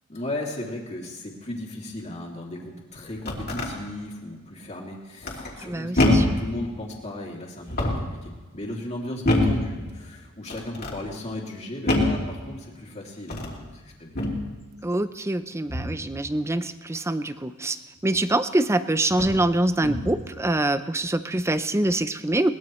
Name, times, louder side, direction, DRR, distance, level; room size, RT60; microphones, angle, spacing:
voice 1, 0.1-14.1, left 1 dB, 30° left, -1 dB, 2.7 m, -36 dB
sound 1, 3.0-3.7 5.2-5.6 6.0-6.5 7.6-8.2 9.2-9.7 10.5-11.0 11.9-12.3 13.2-13.6 14.1-14.5 15.7-16.0 18.1-18.2 19.1-19.4 19.8-20.2, left 1 dB, 45° left, 2.8 m, -24 dB
voice 2, 5.6-6.2 14.8-22.5, right 1 dB, 15° right, 11 dB, 0.5 m, -25 dB
22.0 x 19.5 x 3.2 m, 1.3 s
head